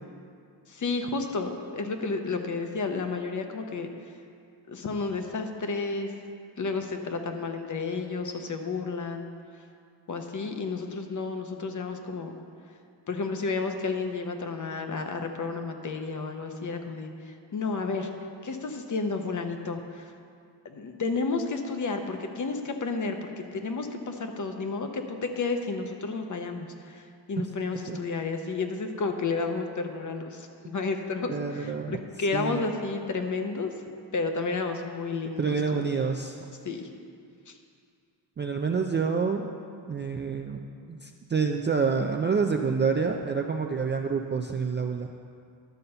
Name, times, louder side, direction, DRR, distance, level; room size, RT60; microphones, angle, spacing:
voice 1, 0.7-3.9 4.7-6.1 6.6-9.3 10.1-12.3 13.1-18.1 18.4-20.0 20.6-33.7 34.1-35.8 36.6-36.9 37.5-37.6, left 4 dB, 40° left, 5 dB, 0.8 m, -31 dB
voice 2, 31.3-32.0 32.3-32.7 35.4-36.5 38.4-39.5 39.9-40.6 40.9-45.1, right 5 dB, 25° right, 3 dB, 0.3 m, -27 dB
11.5 x 4.1 x 6.7 m, 2.4 s
cardioid pair, 105°, 47 cm